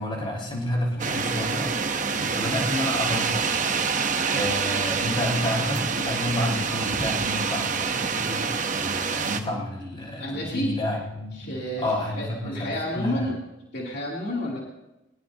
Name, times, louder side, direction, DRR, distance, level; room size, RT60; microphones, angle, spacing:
voice 1, 0.0-1.7 2.1-3.8 4.3-13.2, left 1 dB, 25° left, -3 dB, 5.6 m, -30 dB
sound 1, 1.0-9.4, right 5 dB, 40° right, 1.0 m, -26 dB
voice 2, 10.2-10.7 11.3-11.8 12.2-13.3 13.7-14.6, equal, 55° left, -4 dB, 3.2 m, -30 dB
22.5 x 20.5 x 2.9 m, 0.96 s
head